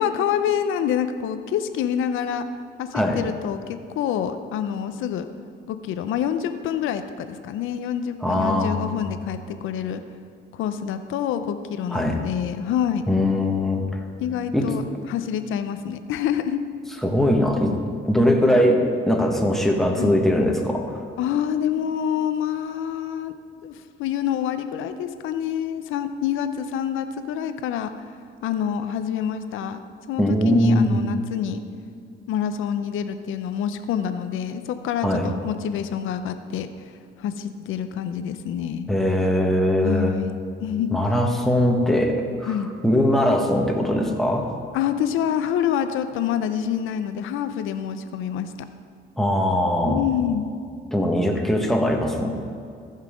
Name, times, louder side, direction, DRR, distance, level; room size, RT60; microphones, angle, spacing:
voice 1, 0.0-2.5 2.8-5.3 5.7-10.0 10.5-13.0 14.2-16.6 20.0-20.1 21.2-23.3 23.6-27.9 28.4-29.8 30.1-31.6 32.3-36.7 37.2-38.9 39.8-41.0 42.5-42.7 44.7-48.5 49.9-50.5, left 9 dB, 85° left, 9 dB, 0.6 m, -27 dB
voice 2, 8.2-9.1 11.9-12.2 13.1-13.8 14.5-14.7 17.0-17.7 18.0-21.0 30.2-31.0 35.0-35.3 38.9-40.1 40.9-42.5 42.8-44.5 49.2-50.0 50.9-52.3, left 1 dB, ahead, 1 dB, 1.4 m, -21 dB
15.0 x 5.6 x 5.1 m, 2.4 s
cardioid pair, 90°, 20 cm